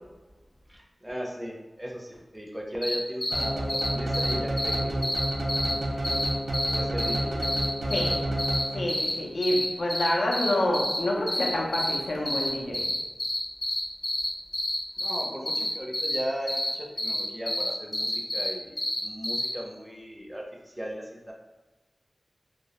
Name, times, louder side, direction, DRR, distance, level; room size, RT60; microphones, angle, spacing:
voice 1, 0.7-5.1 5.9-6.4 6.7-7.4 15.0-21.3, equal, 15° right, 0 dB, 0.5 m, -37 dB
sound 1, 2.8-2.9 3.2-3.4 3.7-4.3 4.6-4.7 5.0-5.7 6.0-6.3 6.5-7.2 7.4-8.6 8.9-9.1 9.4-9.6 9.9-11.0 11.3-12.0 12.2-12.5 12.7-14.3 14.5-16.2 16.5-16.7 17.0-17.2 17.5-18.5 18.8-19.5, left 1 dB, 50° left, 0.7 m, -28 dB
sound 2, 3.3-9.1, right 1 dB, 80° right, 0.3 m, -30 dB
voice 2, 8.7-12.8, left 1 dB, 90° left, -2 dB, 0.5 m, -27 dB
2.2 x 2.0 x 2.8 m, 1.2 s
wide cardioid pair, 50°, 0 cm